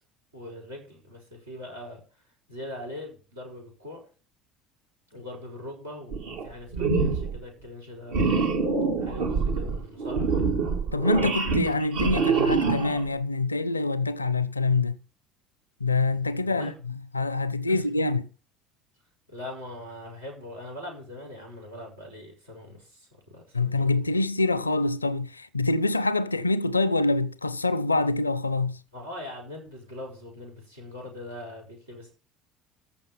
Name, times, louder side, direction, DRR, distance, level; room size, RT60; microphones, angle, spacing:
voice 1, 0.3-2.0 2.5-4.0 5.1-8.3 9.0-10.5 16.4-16.8 17.7-17.8 19.3-23.9 28.9-32.1, left 1 dB, 80° right, 5.3 m, -41 dB
sound 1, 6.1-6.5 6.7-7.4 8.1-13.1, right 4 dB, 65° right, 2.4 m, -25 dB
voice 2, 10.9-15.0 15.8-18.3 23.5-28.8, left 2 dB, 85° left, 0.5 m, -25 dB
14.5 x 5.9 x 7.1 m
figure-of-eight pair, 60°, 0 cm